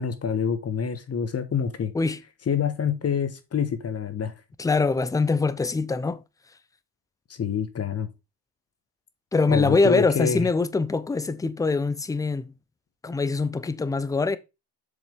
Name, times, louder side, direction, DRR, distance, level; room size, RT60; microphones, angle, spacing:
voice 1, 0.0-1.9 2.5-4.3 7.3-8.1 9.5-10.5, left 7 dB, 30° left, 1.2 m, -27 dB
voice 2, 4.6-6.2 9.3-12.5 13.0-14.4, left 3 dB, 10° left, 0.5 m, -23 dB
7.0 x 5.2 x 3.5 m
supercardioid pair, 90°, 49 cm